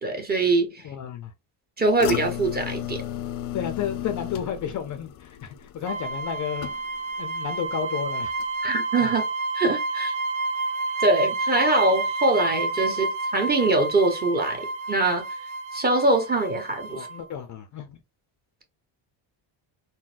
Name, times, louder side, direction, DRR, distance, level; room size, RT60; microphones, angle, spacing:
voice 1, 0.0-0.8 1.8-3.0 8.6-9.2 9.5-10.1 11.0-13.1 13.3-15.2 15.7-17.1, right 2 dB, 20° right, 0.9 m, -23 dB
voice 2, 0.8-1.3 3.5-6.7 7.2-8.3 9.0-9.1 12.9-13.0 16.9-18.0, left 8 dB, 40° left, 0.5 m, -32 dB
sound 1, 2.0-7.2 7.5-8.0 8.4-8.5, left 12 dB, 85° left, 0.6 m, -34 dB
sound 2, 5.9-17.3, right 3 dB, 75° right, 0.8 m, -30 dB
3.9 x 2.1 x 2.4 m
cardioid pair, 130°, 46 cm